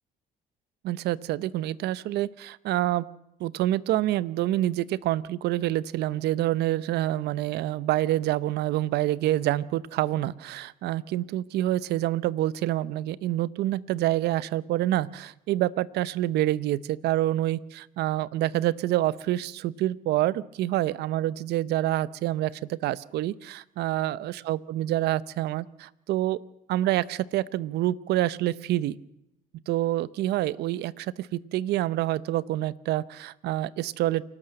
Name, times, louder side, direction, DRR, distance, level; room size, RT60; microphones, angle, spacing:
voice 1, 0.8-3.0 3.4-26.4 26.7-29.0 29.7-34.2, right 14 dB, 75° right, 20 dB, 0.8 m, -27 dB
28.0 x 12.5 x 7.8 m, 0.83 s
cardioid pair, 110°, 17 cm